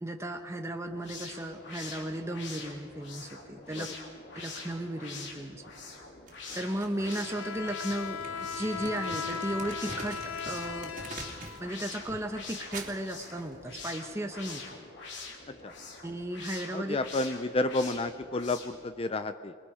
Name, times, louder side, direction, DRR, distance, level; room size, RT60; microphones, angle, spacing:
voice 1, 0.0-3.9 4.3-5.6 6.5-10.9 11.6-14.8 16.0-17.0, right 1 dB, 15° right, 5 dB, 0.9 m, -35 dB
sound 1, 0.8-18.9, left 3 dB, 60° left, 3.4 m, -45 dB
Crumpling crinkling, 6.3-11.7 12.0-14.0, right 2 dB, 40° right, 2.7 m, -45 dB
Bowed string instrument, 7.0-12.1, left 6 dB, 85° left, 1.0 m, -38 dB
voice 2, 16.7-19.6, left 2 dB, 30° left, 10 dB, 0.5 m, -31 dB
27.5 x 21.5 x 4.9 m, 2.1 s
head